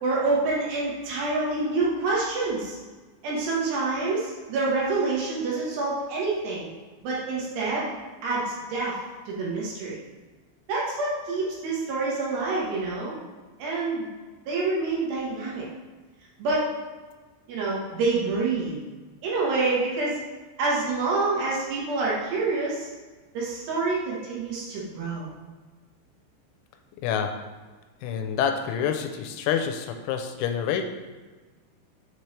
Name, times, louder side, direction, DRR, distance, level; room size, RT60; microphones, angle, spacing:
voice 1, 0.0-2.8 3.2-6.7 7.0-7.9 8.2-9.0 9.3-10.0 10.7-13.1 13.6-14.1 14.5-15.7 16.4-16.6 17.5-18.8 19.2-20.2 20.6-22.9 23.3-25.3, right 3 dB, 70° right, -5 dB, 3.1 m, -27 dB
voice 2, 28.0-30.8, left 8 dB, 90° left, 5 dB, 3.0 m, -27 dB
7.3 x 4.3 x 3.2 m, 1.3 s
omnidirectional pair, 5.4 m